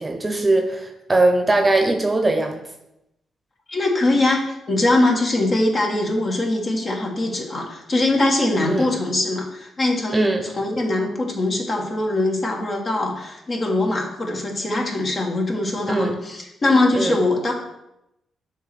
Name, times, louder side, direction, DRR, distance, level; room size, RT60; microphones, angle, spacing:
voice 1, 0.0-2.6 8.6-8.9 10.1-10.5 15.9-16.2 16.9-17.2, right 2 dB, 20° right, 4 dB, 0.9 m, -20 dB
voice 2, 3.7-17.5, left 2 dB, 40° left, 0 dB, 1.6 m, -22 dB
6.9 x 3.2 x 6.0 m, 0.87 s
cardioid pair, 80°, 0 cm